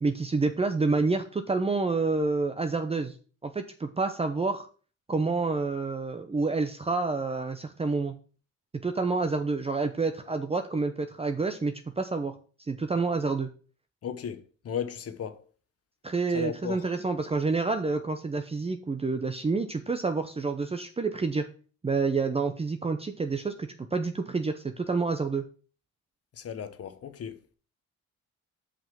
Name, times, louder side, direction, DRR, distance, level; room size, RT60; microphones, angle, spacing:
voice 1, 0.0-3.1 3.4-4.7 5.1-8.1 8.8-12.4 12.7-13.5 16.0-21.5 21.8-25.4, right 3 dB, 20° right, 0.7 m, -28 dB
voice 2, 14.0-15.4 16.3-16.8 26.4-27.5, left 8 dB, 50° left, 1.0 m, -35 dB
5.6 x 5.0 x 5.9 m
cardioid pair, 90°, 30 cm